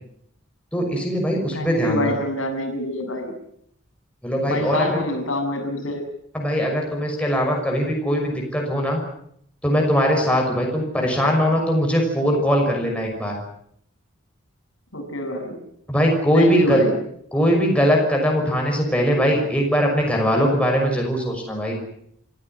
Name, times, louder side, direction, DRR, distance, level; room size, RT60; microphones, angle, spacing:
voice 1, 0.7-2.1 4.2-4.9 6.3-9.0 9.6-13.4 15.9-16.8 17.3-21.8, equal, 5° left, 0 dB, 6.1 m, -21 dB
voice 2, 1.5-3.3 4.5-6.0 14.9-15.6 16.3-17.0, equal, 80° left, 4 dB, 6.9 m, -26 dB
26.5 x 16.5 x 9.4 m, 0.70 s
head